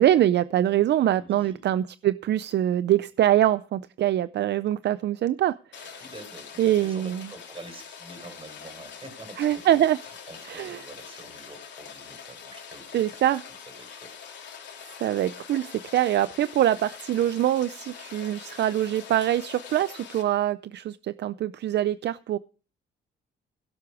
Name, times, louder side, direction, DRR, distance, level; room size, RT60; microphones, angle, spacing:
voice 1, 0.0-6.0 6.6-7.2 9.4-10.0 10.5-10.8 12.9-13.4 15.0-22.4, right 12 dB, 60° right, 16 dB, 0.5 m, -24 dB
voice 2, 1.1-1.7 6.0-13.0 13.7-14.1, right 2 dB, 25° right, 8 dB, 4.7 m, -46 dB
Rain, 5.7-20.2, left 7 dB, 65° left, 3.5 m, -44 dB
16.5 x 8.1 x 4.9 m, 0.37 s
cardioid pair, 90°, 20 cm